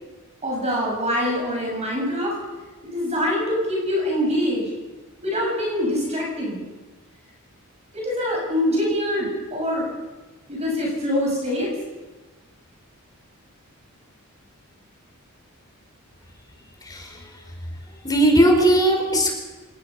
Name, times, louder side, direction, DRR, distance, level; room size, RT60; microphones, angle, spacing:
voice 1, 0.4-2.4 2.8-4.7 5.2-6.6 7.9-9.9 10.5-11.7, equal, 30° right, -2 dB, 6.9 m, -24 dB
voice 2, 16.8-17.4 18.0-19.3, right 1 dB, 20° left, 2 dB, 4.9 m, -18 dB
27.5 x 19.5 x 5.6 m, 1.2 s
head